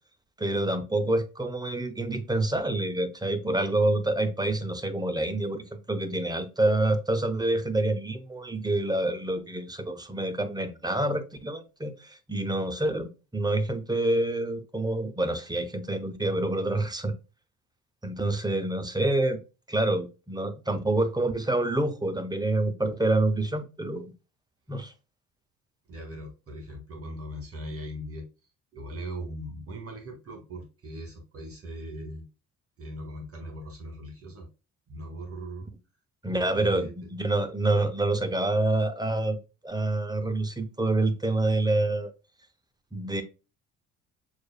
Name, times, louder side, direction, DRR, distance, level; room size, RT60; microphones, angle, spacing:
voice 1, 0.4-17.1 18.0-19.4 19.7-24.1 24.7-24.9 36.2-39.4 39.6-42.1 42.9-43.2, right 2 dB, 10° right, 0.7 m, -27 dB
voice 2, 25.9-28.3 28.7-32.3 32.8-34.5 34.9-35.7 36.5-36.9, right 1 dB, 35° right, 1.6 m, -39 dB
6.3 x 2.5 x 2.2 m
hypercardioid pair, 55°, 39 cm